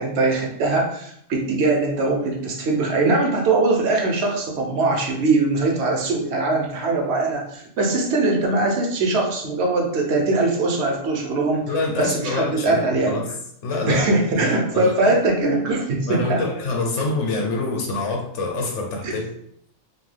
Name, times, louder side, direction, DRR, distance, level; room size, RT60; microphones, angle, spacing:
voice 1, 0.0-11.7 12.0-13.2 13.9-16.4 19.0-19.2, right 3 dB, 70° right, 0 dB, 0.9 m, -21 dB
voice 2, 11.7-13.3 13.6-14.1 14.3-14.9 16.1-19.2, left 3 dB, 75° left, 1 dB, 1.0 m, -26 dB
2.6 x 2.2 x 3.2 m, 0.70 s
omnidirectional pair, 1.2 m